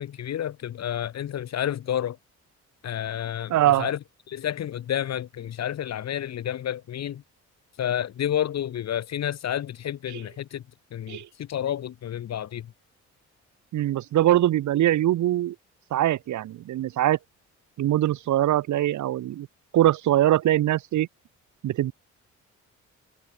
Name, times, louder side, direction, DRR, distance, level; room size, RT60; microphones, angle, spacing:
voice 1, 0.0-2.2 2.8-4.0 4.3-7.2 7.8-10.6 10.9-12.7, left 10 dB, 60° left, 1.6 m, -30 dB
voice 2, 3.5-3.9 10.1-10.2 11.1-11.3 13.7-15.5 15.9-17.2 17.8-19.5 19.7-21.1 21.6-21.9, right 13 dB, 70° right, 1.4 m, -22 dB
cardioid pair, 90°, 30 cm